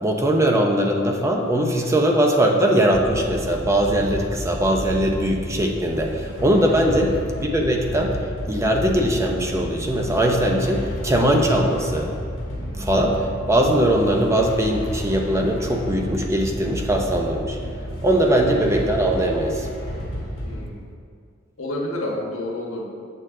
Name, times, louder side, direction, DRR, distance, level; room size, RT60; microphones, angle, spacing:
voice 1, 0.0-8.1 8.5-12.1 12.8-17.6 18.0-19.7, right 1 dB, 15° right, 1 dB, 0.6 m, -20 dB
sound 1, 2.9-20.6, equal, 65° left, 1.8 m, -31 dB
voice 2, 6.9-7.2 18.2-18.6 20.4-20.8 21.6-22.8, left 1 dB, 80° left, -1 dB, 1.3 m, -30 dB
7.9 x 6.6 x 3.7 m, 2.3 s
head